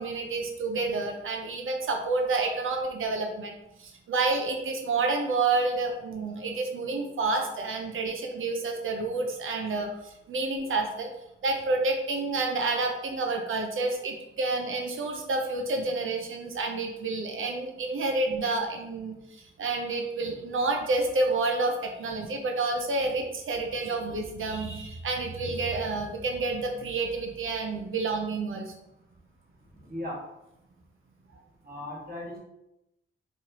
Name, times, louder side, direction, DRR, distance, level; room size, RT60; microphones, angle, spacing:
voice 1, 0.0-11.1 11.4-28.7, right 3 dB, 75° right, 3 dB, 0.6 m, -29 dB
voice 2, 29.8-30.2 31.6-32.4, left 1 dB, 45° right, -4 dB, 1.5 m, -37 dB
4.4 x 3.1 x 2.8 m, 0.88 s
wide cardioid pair, 85°, 21 cm